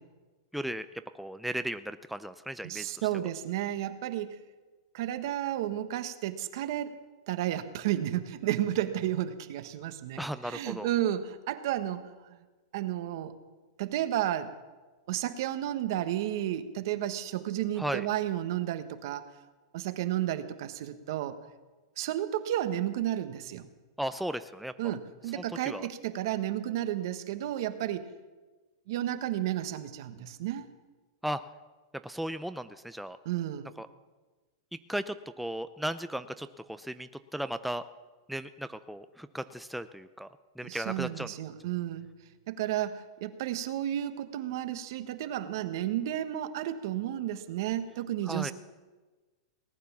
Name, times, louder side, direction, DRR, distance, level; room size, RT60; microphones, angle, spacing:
voice 1, 0.5-0.9 1.1-3.1 10.2-10.9 17.8-18.1 24.0-24.7 25.3-25.9 31.2-31.4 32.0-33.2 33.8-33.9 34.9-37.8 38.3-40.3 40.6-41.3 48.3-48.5, right 1 dB, ahead, 10 dB, 0.4 m, -36 dB
voice 2, 2.6-4.4 4.9-7.0 7.3-12.4 12.7-13.3 13.8-14.5 15.1-19.3 19.7-21.4 22.0-23.7 24.8-28.1 28.9-30.7 33.2-33.7 40.6-42.1 42.5-48.5, right 12 dB, 65° right, 10 dB, 1.2 m, -32 dB
18.5 x 9.5 x 7.2 m, 1.3 s
hypercardioid pair, 135°, 2 cm